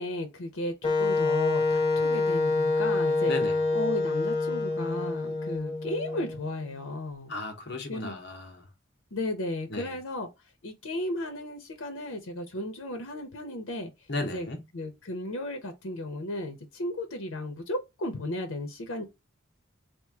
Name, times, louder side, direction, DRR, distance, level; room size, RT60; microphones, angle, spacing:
voice 1, 0.0-3.3 3.7-7.3 7.9-8.2 9.1-10.3 10.6-13.9 14.2-19.0, left 1 dB, 90° left, 0.8 m, -34 dB
Wind instrument woodwind instrument, 0.8-6.7, left 3 dB, 25° left, 1.1 m, -27 dB
voice 2, 3.2-3.6 7.3-8.7 9.7-9.9 14.1-14.6, left 2 dB, 55° left, 1.0 m, -35 dB
3.0 x 2.5 x 3.4 m
head